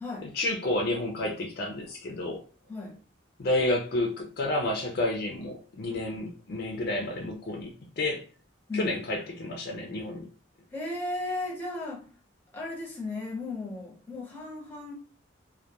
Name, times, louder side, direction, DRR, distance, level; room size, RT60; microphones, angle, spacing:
voice 1, 0.2-2.4 3.4-7.7 8.0-8.3 8.7-10.3, left 1 dB, 50° left, 0.4 m, -30 dB
voice 2, 10.7-12.0 12.5-14.9, left 2 dB, 10° left, 0.7 m, -35 dB
2.2 x 2.1 x 2.8 m
head